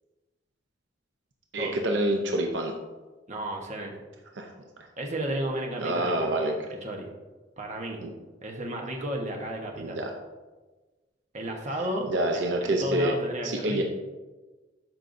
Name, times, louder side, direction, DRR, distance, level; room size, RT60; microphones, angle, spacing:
voice 1, 1.5-2.7 4.4-4.5 5.8-6.5 8.0-8.1 9.8-10.1 12.1-13.1 13.4-13.8, right 1 dB, 70° right, 2 dB, 0.7 m, -27 dB
voice 2, 3.3-3.9 5.0-6.3 6.8-7.1 7.6-8.0 8.4-10.0 11.3-13.8, right 1 dB, 40° right, 1 dB, 1.1 m, -33 dB
12.5 x 5.5 x 2.7 m, 1.2 s
head